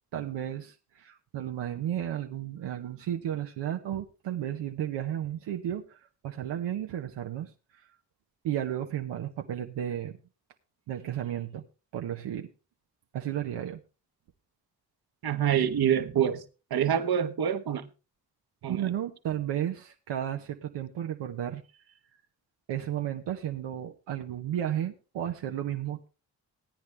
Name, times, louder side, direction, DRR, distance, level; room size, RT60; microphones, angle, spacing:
voice 1, 0.1-6.0 6.2-7.8 8.4-10.2 10.9-11.7 11.9-12.5 13.1-13.8 18.7-21.6 22.7-26.1, right 11 dB, 85° right, 1.0 m, -33 dB
voice 2, 15.2-16.4 16.7-17.9 18.6-18.9, right 9 dB, 60° right, 1.2 m, -26 dB
16.5 x 9.6 x 3.3 m
supercardioid pair, 40°, 42 cm